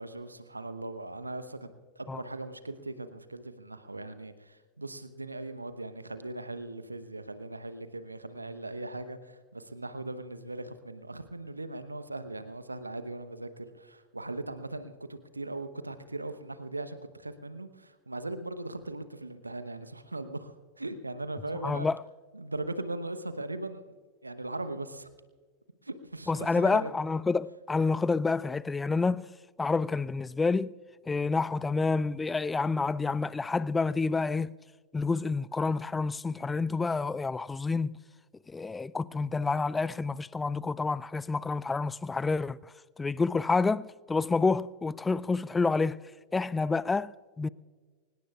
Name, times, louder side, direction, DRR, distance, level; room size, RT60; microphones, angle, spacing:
voice 1, 0.0-1.7 1.9-21.9 22.3-23.8 24.2-25.1 25.8-26.9, right 2 dB, 80° right, 1.0 m, -39 dB
voice 2, 21.6-22.0 26.3-29.3 29.6-30.7 31.1-34.5 34.9-38.0 38.5-46.0 46.3-47.5, left 4 dB, 10° left, 0.3 m, -28 dB
24.5 x 20.0 x 2.4 m
figure-of-eight pair, 90°, 0 cm